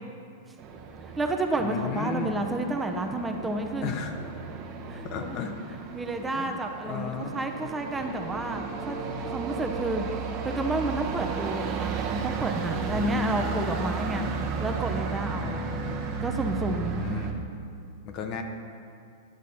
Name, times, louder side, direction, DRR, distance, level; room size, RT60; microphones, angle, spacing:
sound 1, 0.6-17.3, right 5 dB, 40° right, 1.0 m, -34 dB
voice 1, 1.0-3.9 4.9-5.5 5.9-9.0 9.3-10.1 10.4-14.3 14.6-15.6 16.2-17.0, right 2 dB, 15° right, 4 dB, 0.7 m, -30 dB
voice 2, 1.6-2.3 3.8-4.1 5.0-5.5 6.3-6.6 6.9-7.4 12.9-13.5 15.4-15.8 16.6-17.4 18.0-18.4, left 6 dB, 45° left, 5 dB, 0.8 m, -34 dB
10.5 x 6.3 x 4.1 m, 2.4 s
hypercardioid pair, 110°, 0 cm